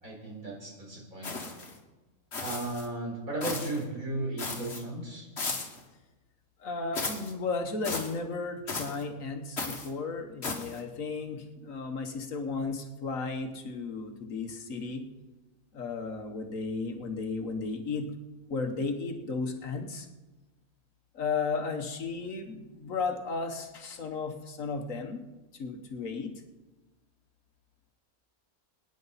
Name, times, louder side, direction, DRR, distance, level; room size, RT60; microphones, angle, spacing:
voice 1, 0.0-1.5 2.4-5.3, right 2 dB, 65° right, -2 dB, 4.7 m, -35 dB
sound 1, 1.2-1.8 2.3-2.9 3.4-3.8 4.4-4.8 5.4-5.8 6.9-7.3 7.8-8.1 8.7-9.0 9.6-9.9 10.4-10.8, left 3 dB, 50° left, 1.8 m, -35 dB
voice 2, 6.6-15.0 15.7-18.1 18.5-20.1 21.1-25.2 25.6-26.3, left 4 dB, 65° left, 5 dB, 1.6 m, -34 dB
23.0 x 10.0 x 4.1 m, 1.1 s
omnidirectional pair, 1.5 m